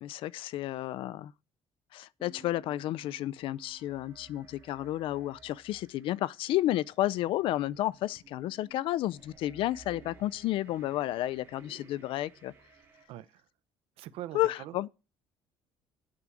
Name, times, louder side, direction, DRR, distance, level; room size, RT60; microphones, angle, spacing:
voice 1, 0.0-1.3 1.9-12.5 14.3-14.9, left 14 dB, 65° left, 0.5 m, -31 dB
Piano, 2.2-5.6, right 7 dB, 10° left, 2.9 m, -60 dB
sound 1, 2.8-13.1, right 4 dB, 30° right, 3.3 m, -58 dB
voice 2, 14.0-14.9, right 14 dB, 85° right, 0.7 m, -42 dB
8.6 x 6.2 x 8.3 m
cardioid pair, 150°, 10 cm